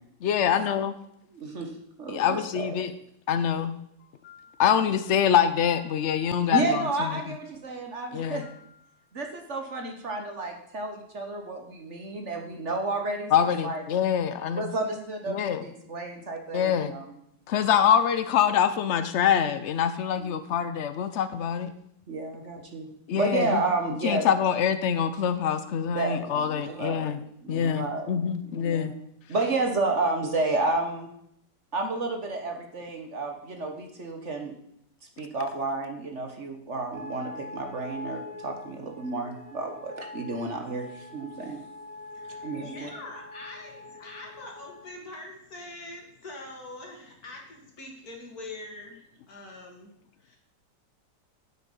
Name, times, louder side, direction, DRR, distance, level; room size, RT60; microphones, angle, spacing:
voice 1, 0.2-1.0 2.1-2.9 3.3-3.7 4.2-7.2 8.1-8.6 13.3-14.6 15.3-15.7 16.5-16.9 17.5-21.7 23.1-23.6 24.0-27.2 27.5-28.9, left 8 dB, 90° left, 11 dB, 0.6 m, -25 dB
voice 2, 1.3-1.7 2.0-2.7 6.5-8.4 9.1-13.8 14.5-17.0 20.2-20.5 22.1-22.9 23.1-24.3 25.9-27.2 27.4-28.1 28.5-29.0 29.3-31.1 31.7-34.5 35.2-41.6 42.4-42.9, right 3 dB, 45° right, 4 dB, 1.4 m, -31 dB
sound 1, 36.9-44.9, left 3 dB, 80° right, 4.4 m, -43 dB
voice 3, 42.1-49.9 50.2-50.4, left 2 dB, 55° left, 1 dB, 2.6 m, -43 dB
9.4 x 8.3 x 5.5 m, 0.73 s
omnidirectional pair, 1.9 m